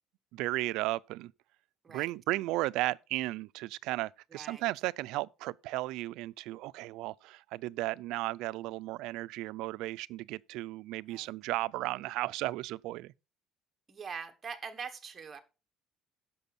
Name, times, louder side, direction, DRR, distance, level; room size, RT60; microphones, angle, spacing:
voice 1, 0.3-1.3 1.9-13.1, right 18 dB, 70° right, 0.4 m, -35 dB
voice 2, 4.3-4.6 11.1-11.3 13.9-15.4, right 6 dB, 20° right, 1.2 m, -43 dB
10.5 x 6.9 x 4.1 m
cardioid pair, 175°, 0 cm